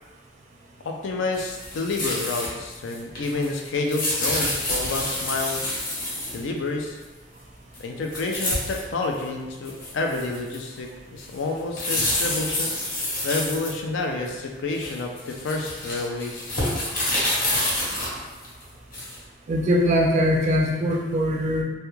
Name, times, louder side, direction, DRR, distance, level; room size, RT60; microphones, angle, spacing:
voice 1, 0.8-5.6 6.3-7.0 7.8-12.7 13.2-16.5, left 3 dB, 75° left, 1 dB, 0.4 m, -29 dB
sound 1, 1.3-2.5 2.7-6.4 7.7-7.8 8.1-8.8 9.2-9.3 9.6-10.8 11.2-14.3 14.7-19.2, left 1 dB, 50° left, 0.8 m, -28 dB
voice 2, 19.5-21.6, equal, 40° right, -1 dB, 0.4 m, -21 dB
2.3 x 2.2 x 3.0 m, 1.2 s
head